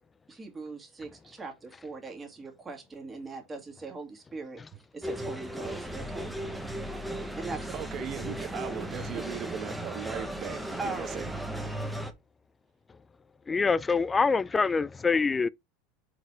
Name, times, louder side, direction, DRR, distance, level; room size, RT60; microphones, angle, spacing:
voice 1, 0.3-4.6 4.9-6.3 7.4-7.7 9.1-9.2 10.8-11.2 11.8-12.0, right 3 dB, 20° right, 2.1 m, -40 dB
sound 1, 5.0-12.1, right 1 dB, ahead, 1.0 m, -36 dB
voice 2, 7.7-11.3, right 9 dB, 45° right, 1.3 m, -38 dB
voice 3, 13.5-15.5, left 4 dB, 20° left, 0.4 m, -25 dB
4.9 x 4.1 x 4.9 m
supercardioid pair, 115°, 0 cm